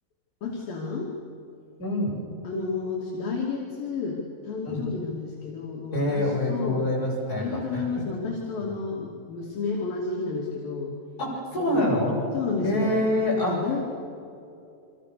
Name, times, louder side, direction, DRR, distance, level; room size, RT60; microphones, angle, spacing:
voice 1, 0.4-1.1 2.4-6.9 7.4-10.9 11.6-11.8 12.3-12.9 13.3-13.8, left 4 dB, 60° left, -4 dB, 4.2 m, -31 dB
voice 2, 1.8-2.2 4.6-4.8 5.9-8.0 11.2-12.2 12.6-13.6, left 1 dB, 20° left, -4 dB, 7.9 m, -26 dB
29.5 x 25.0 x 6.8 m, 2.7 s
omnidirectional pair, 4.9 m